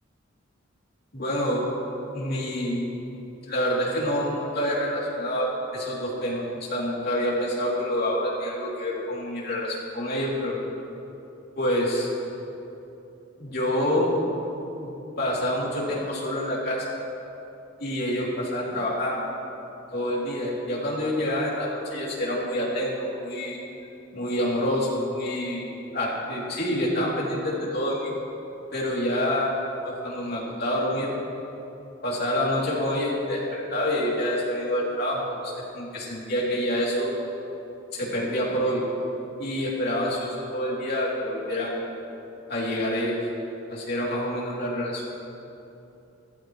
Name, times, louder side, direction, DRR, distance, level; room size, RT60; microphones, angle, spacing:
voice 1, 1.1-1.7 2.1-2.9 3.5-10.5 11.6-12.1 13.4-14.2 14.7-14.9 15.2-16.9 17.8-19.2 19.9-23.6 24.1-25.7 25.9-28.1 28.7-29.5 29.8-31.1 32.0-37.1 37.9-38.8 39.4-41.8 42.5-43.2 43.7-45.0, equal, 55° left, -5 dB, 3.0 m, -27 dB
15.0 x 14.5 x 3.1 m, 2.9 s
head